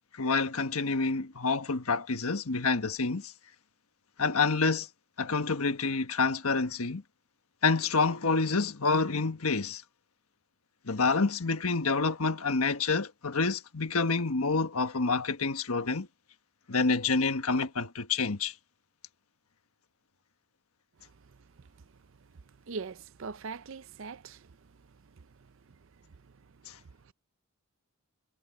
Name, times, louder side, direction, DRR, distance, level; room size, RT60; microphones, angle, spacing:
voice 1, 0.1-3.3 4.2-4.9 5.2-7.0 7.6-9.8 10.8-16.1 16.7-18.5, left 4 dB, 85° left, 1.4 m, -28 dB
voice 2, 22.7-24.5, right 4 dB, 65° right, 0.5 m, -40 dB
head